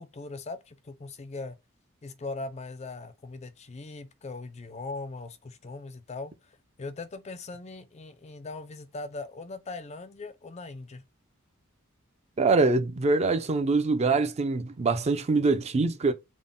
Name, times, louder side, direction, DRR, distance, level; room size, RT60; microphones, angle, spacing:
voice 1, 0.0-1.6 2.0-11.0, left 3 dB, 30° left, 0.4 m, -40 dB
voice 2, 12.4-16.1, right 3 dB, 30° right, 0.4 m, -24 dB
3.6 x 2.0 x 3.7 m
head